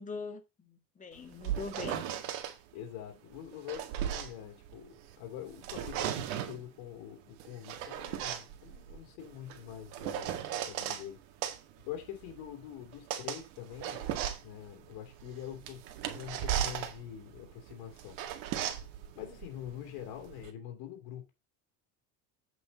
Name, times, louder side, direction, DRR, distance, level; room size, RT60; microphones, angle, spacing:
voice 1, 0.0-2.1, left 4 dB, 20° left, 1.9 m, -42 dB
sound 1, 1.2-2.5 3.4-5.2 5.5-6.6 7.4-11.0 11.4-20.5, right 10 dB, 85° right, 2.0 m, -37 dB
voice 2, 2.7-11.2 11.8-14.0 14.4-18.2 19.1-21.3, left 11 dB, 65° left, 2.9 m, -45 dB
8.4 x 6.6 x 4.1 m
cardioid pair, 140°, 39 cm